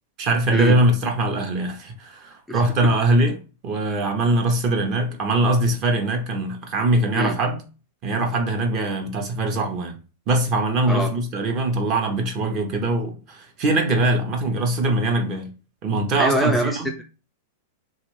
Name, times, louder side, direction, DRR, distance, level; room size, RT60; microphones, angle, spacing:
voice 1, 0.2-3.4 3.6-7.6 8.0-10.0 10.3-15.5 15.8-16.9, right 2 dB, 40° right, 0.8 m, -22 dB
voice 2, 16.2-17.0, equal, 5° left, 0.3 m, -23 dB
3.2 x 2.4 x 3.1 m
hypercardioid pair, 135°, 0 cm